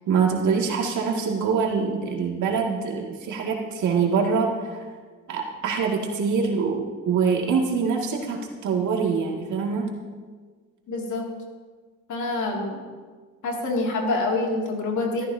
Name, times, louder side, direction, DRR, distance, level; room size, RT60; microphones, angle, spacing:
voice 1, 0.1-4.9 5.3-9.9, right 5 dB, 75° right, -1 dB, 2.3 m, -24 dB
voice 2, 10.9-11.3 12.1-12.8 13.4-15.3, left 2 dB, 75° left, 0 dB, 2.6 m, -26 dB
15.0 x 13.5 x 2.8 m, 1.5 s
cardioid pair, 90°, 30 cm